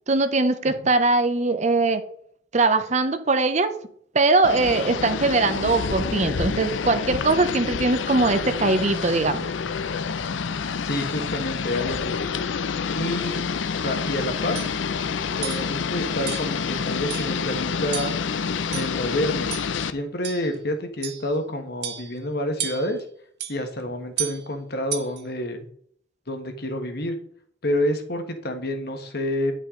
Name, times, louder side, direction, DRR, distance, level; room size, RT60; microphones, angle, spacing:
voice 1, 0.1-2.0 2.5-3.7 4.1-9.5, right 3 dB, 40° right, 10 dB, 0.7 m, -21 dB
sound 1, 4.4-19.9, left 5 dB, 85° left, 0.5 m, -28 dB
voice 2, 10.8-12.2 12.9-13.4 13.7-14.6 15.4-18.1 18.7-19.5 19.9-23.0 23.5-25.7 26.3-27.2 27.6-29.5, left 1 dB, 55° left, 6 dB, 1.3 m, -28 dB
sound 2, 14.0-14.2 14.5-14.8 15.4-15.7 16.3-16.6 17.1-17.4 17.9-18.3 18.7-19.1 19.5-19.7 20.2-20.5 21.0-21.3 21.8-22.2 22.6-23.0 23.4-23.6 24.2-24.4 24.9-25.2, right 10 dB, 60° right, 1.0 m, -33 dB
10.0 x 5.5 x 3.7 m, 0.64 s
head